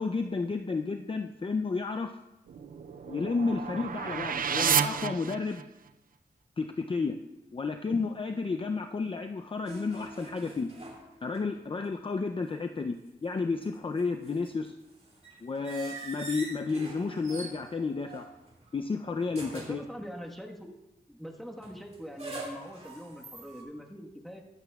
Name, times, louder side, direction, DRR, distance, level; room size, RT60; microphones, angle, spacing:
voice 1, 0.0-2.1 3.0-5.6 6.6-7.2 7.5-10.7 11.2-13.0 13.2-14.7 15.4-18.3 18.7-19.8, left 4 dB, 30° left, 5 dB, 0.5 m, -31 dB
sound 1, 2.5-5.9, right 7 dB, 55° right, 0.4 m, -31 dB
sound 2, 9.7-11.6 11.8-11.9 13.4-18.7 19.3-19.9 21.6-23.6, right 2 dB, 35° right, 2.6 m, -44 dB
voice 2, 19.5-20.7 21.1-24.4, equal, ahead, 0 dB, 1.3 m, -43 dB
21.0 x 8.0 x 2.3 m, 0.96 s
wide cardioid pair, 95°, 18 cm